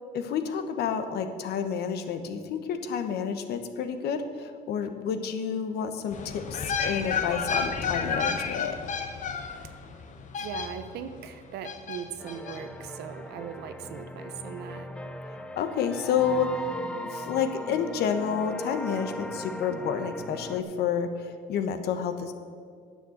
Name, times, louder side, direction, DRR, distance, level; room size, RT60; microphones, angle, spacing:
voice 1, 0.1-8.8 15.6-16.7 17.0-22.3, left 7 dB, 75° left, 8 dB, 1.1 m, -29 dB
sound 1, 6.1-11.1 11.6-12.6 12.8-12.9, left 5 dB, 50° left, 1.1 m, -31 dB
voice 2, 10.4-14.9, right 8 dB, 75° right, 10 dB, 0.9 m, -39 dB
sound 2, 12.2-20.6, left 1 dB, 5° left, 0.7 m, -38 dB
10.0 x 6.7 x 7.9 m, 2.1 s
cardioid pair, 110°, 17 cm